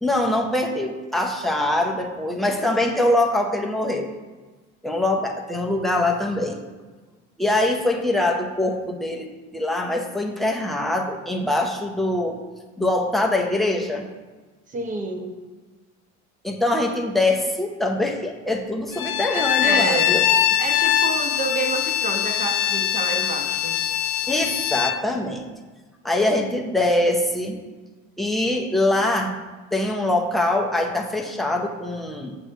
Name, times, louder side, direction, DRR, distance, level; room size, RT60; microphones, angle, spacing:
voice 1, 0.0-4.1 4.8-6.6 7.4-12.4 12.8-14.1 16.4-20.2 24.3-25.4 26.0-27.6 28.2-29.4 29.7-32.3, left 1 dB, ahead, 0 dB, 0.7 m, -23 dB
voice 2, 14.7-15.3 19.2-20.1 20.6-23.8, right 3 dB, 25° right, 3 dB, 1.0 m, -29 dB
Bowed string instrument, 18.9-25.0, left 10 dB, 80° left, 0.7 m, -22 dB
7.6 x 3.2 x 6.4 m, 1.3 s
cardioid pair, 140°, 29 cm